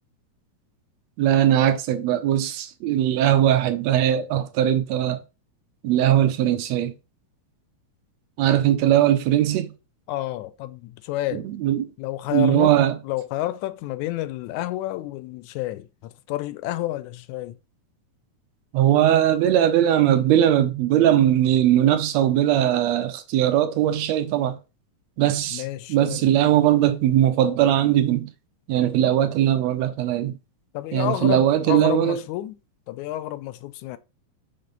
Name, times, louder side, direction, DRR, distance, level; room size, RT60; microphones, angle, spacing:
voice 1, 1.2-5.2 5.8-6.9 8.4-9.7 11.3-11.9 12.3-13.0 18.7-24.6 25.2-25.6 25.9-28.3 28.7-30.4 30.9-32.2, right 11 dB, 75° right, 1.8 m, -20 dB
voice 2, 10.1-11.5 12.0-12.8 13.0-17.6 25.5-26.3 30.7-32.6 32.9-34.0, left 15 dB, 80° left, 1.9 m, -30 dB
6.6 x 3.6 x 5.3 m
omnidirectional pair, 3.5 m